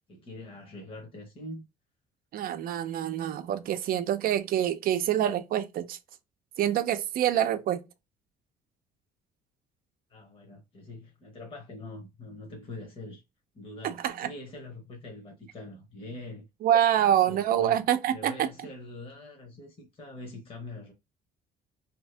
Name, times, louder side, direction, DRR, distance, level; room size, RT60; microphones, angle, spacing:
voice 1, 0.1-1.6 10.1-13.2 13.5-16.4 17.0-17.8 18.1-20.9, left 2 dB, 30° left, 1.0 m, -43 dB
voice 2, 2.3-6.0 6.6-7.8 13.8-14.3 16.6-18.5, right 11 dB, 60° right, 0.5 m, -26 dB
2.8 x 2.6 x 3.3 m
cardioid pair, 110°, 17 cm